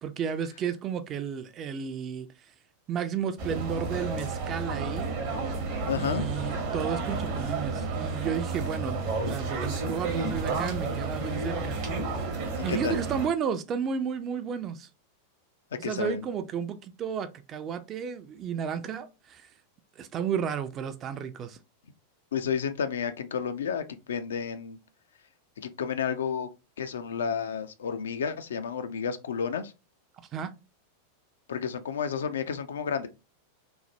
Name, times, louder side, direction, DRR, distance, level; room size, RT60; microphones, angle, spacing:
voice 1, 0.0-2.3 2.9-5.1 5.9-11.8 12.6-14.9 15.8-19.5 20.0-21.6 30.2-30.5, right 7 dB, 30° right, 0.3 m, -33 dB
sound 1, 3.4-13.3, right 3 dB, 50° right, 0.7 m, -31 dB
voice 2, 5.9-6.3 12.7-13.0 15.8-16.2 22.3-24.8 25.6-26.5 26.8-29.7 31.5-33.1, left 7 dB, 65° left, 0.3 m, -31 dB
3.1 x 2.0 x 2.7 m
figure-of-eight pair, 90°, 0 cm